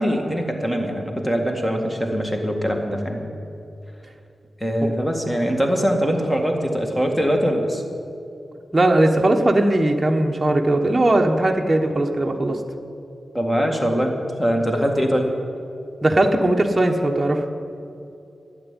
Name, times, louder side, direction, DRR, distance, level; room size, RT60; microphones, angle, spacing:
voice 1, 0.0-3.3 4.6-7.8 13.3-15.3, equal, 15° left, 2 dB, 2.0 m, -22 dB
voice 2, 8.7-12.6 16.0-17.4, right 1 dB, 20° right, 1 dB, 1.1 m, -19 dB
12.0 x 8.2 x 9.7 m, 2.7 s
cardioid pair, 75°, 0 cm